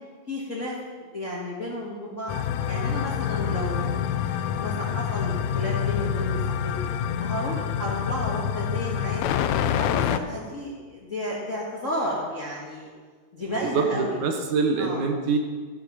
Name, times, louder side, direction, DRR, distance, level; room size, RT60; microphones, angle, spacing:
voice 1, 0.3-0.8 1.1-2.3 2.7-4.2 4.5-6.7 7.2-9.2 9.6-12.9 13.3-14.2 14.8-15.0, left 1 dB, 40° left, -4 dB, 1.1 m, -32 dB
sound 1, 2.3-10.2, left 8 dB, 85° left, 1.7 m, -27 dB
voice 2, 13.6-15.4, right 4 dB, 75° right, 4 dB, 2.2 m, -24 dB
14.5 x 6.5 x 5.9 m, 1.5 s
omnidirectional pair, 3.8 m